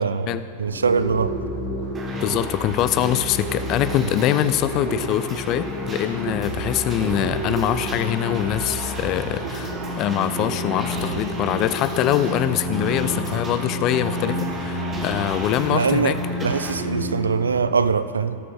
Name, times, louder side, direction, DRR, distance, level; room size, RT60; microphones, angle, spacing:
voice 1, 0.0-1.4 15.7-18.4, right 5 dB, 75° right, 13 dB, 0.4 m, -23 dB
Bird, 0.6-17.6, right 4 dB, 55° right, 0.9 m, -36 dB
sound 1, 0.7-17.7, left 2 dB, 65° left, 2.9 m, -32 dB
sound 2, 1.9-16.7, right 2 dB, 20° right, 1.5 m, -35 dB
voice 2, 2.2-16.2, left 12 dB, 40° left, 13 dB, 0.4 m, -23 dB
17.5 x 6.7 x 3.6 m, 2.4 s
figure-of-eight pair, 90°, 0 cm